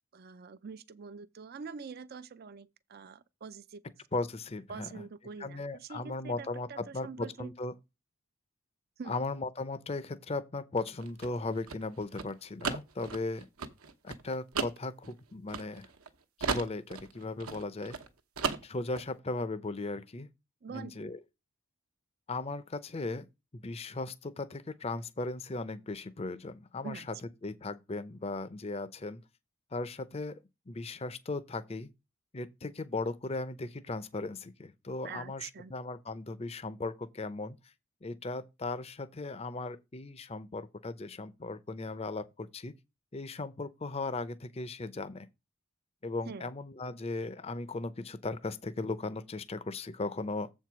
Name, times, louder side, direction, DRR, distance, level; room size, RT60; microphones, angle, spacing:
voice 1, 0.1-3.8 4.7-7.5 9.0-9.2 20.6-20.9 26.8-27.1 35.0-35.7 46.3-46.5, right 5 dB, 45° right, 0.4 m, -45 dB
voice 2, 4.1-5.0 5.4-7.7 9.1-13.5 14.0-15.9 16.4-18.0 18.6-20.3 20.7-21.2 22.3-23.3 23.5-27.0 27.4-29.2 29.7-30.4 30.7-31.9 32.3-37.6 38.0-42.7 43.1-45.3 46.0-50.5, left 3 dB, 30° left, 0.6 m, -37 dB
sound 1, 10.8-16.1 16.4-18.1 18.4-19.1, right 5 dB, 80° right, 1.1 m, -36 dB
7.6 x 4.6 x 6.0 m
head